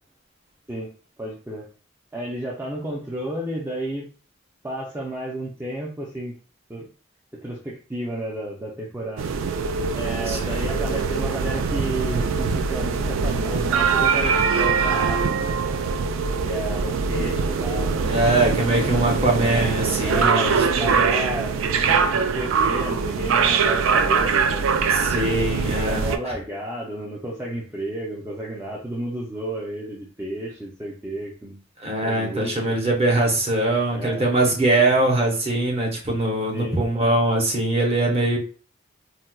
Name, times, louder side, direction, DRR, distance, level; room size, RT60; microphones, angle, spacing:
voice 1, 1.2-1.7 2.1-4.1 4.6-6.3 6.7-6.9 7.4-9.3 9.9-15.4 16.4-17.9 20.0-24.6 25.9-31.6 32.0-32.7 33.9-34.3 36.5-36.8, right 1 dB, 10° right, -3 dB, 0.4 m, -32 dB
sound 1, 9.2-26.2, right 5 dB, 80° right, 0.3 m, -22 dB
voice 2, 10.3-10.6 18.0-21.0 24.9-26.3 31.8-38.4, right 2 dB, 30° right, -1 dB, 0.8 m, -22 dB
4.1 x 2.2 x 2.3 m, 0.38 s
head